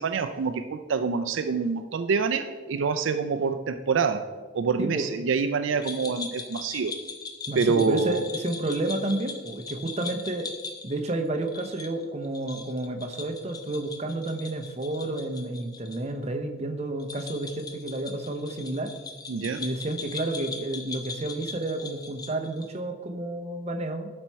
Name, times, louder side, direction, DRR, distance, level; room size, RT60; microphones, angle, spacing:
voice 1, 0.0-4.2 4.5-7.0 7.5-8.3 19.3-19.7, right 5 dB, 75° right, 9 dB, 0.4 m, -26 dB
voice 2, 4.8-5.1 7.5-10.5 10.8-18.9 19.6-24.1, right 2 dB, 35° right, 5 dB, 0.7 m, -31 dB
sound 1, 5.8-16.0 16.2-16.3 17.0-22.8, left 4 dB, 20° left, 0.6 m, -40 dB
11.5 x 4.3 x 4.5 m, 1.3 s
head